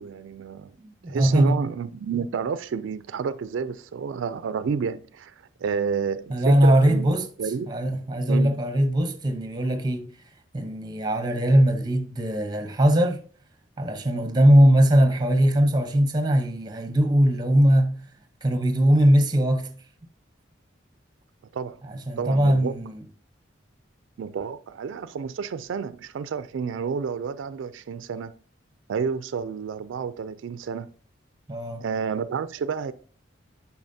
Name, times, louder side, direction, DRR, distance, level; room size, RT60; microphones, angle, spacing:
voice 1, 0.0-0.7 1.1-5.3 5.6-7.7 8.3-8.5 21.5-21.8 22.2-22.7 24.2-28.3 28.9-30.9 31.8-32.9, right 6 dB, 85° right, 0.3 m, -30 dB
voice 2, 0.8-1.6 6.3-7.3 7.7-10.1 10.5-13.2 13.8-18.0 18.4-19.7 21.9-23.0 31.5-31.8, equal, 20° right, 0.7 m, -20 dB
8.9 x 5.9 x 2.7 m
head